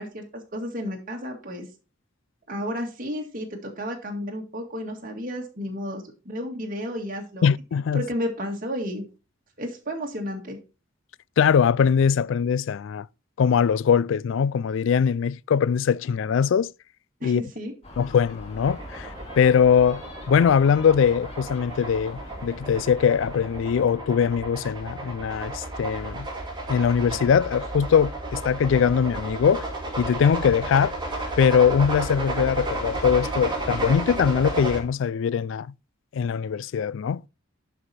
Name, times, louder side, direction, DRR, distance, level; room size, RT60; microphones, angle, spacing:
voice 1, 0.0-1.7 2.5-7.5 7.9-9.1 9.6-10.6 17.2-17.7, equal, 45° right, 1.8 m, -32 dB
voice 2, 7.4-8.0 11.4-13.1 13.4-16.7 17.2-17.4 18.0-20.0 20.3-26.3 26.7-29.7 30.0-31.0 31.4-35.7 36.1-37.2, left 7 dB, 65° left, 0.3 m, -21 dB
Gull seagull, 17.8-23.7, left 1 dB, 30° left, 2.1 m, -43 dB
sound 1, 18.6-34.8, right 2 dB, 20° right, 2.5 m, -33 dB
11.0 x 4.9 x 4.2 m
head